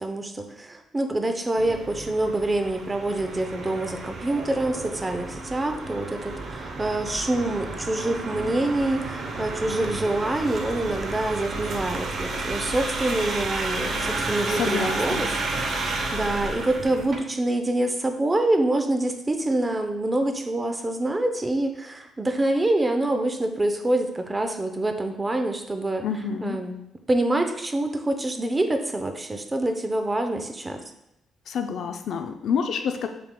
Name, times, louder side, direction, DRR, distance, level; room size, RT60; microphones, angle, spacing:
voice 1, 0.0-15.4 15.7-26.1 26.4-26.8 27.1-30.8, right 2 dB, 20° right, 6 dB, 0.5 m, -26 dB
sound 1, 1.6-17.2, right 2 dB, 55° right, 0.8 m, -31 dB
voice 2, 14.5-15.2 26.0-26.6 31.5-33.1, left 7 dB, 70° left, 6 dB, 0.4 m, -28 dB
6.7 x 3.5 x 2.2 m, 0.84 s
cardioid pair, 90°, 0 cm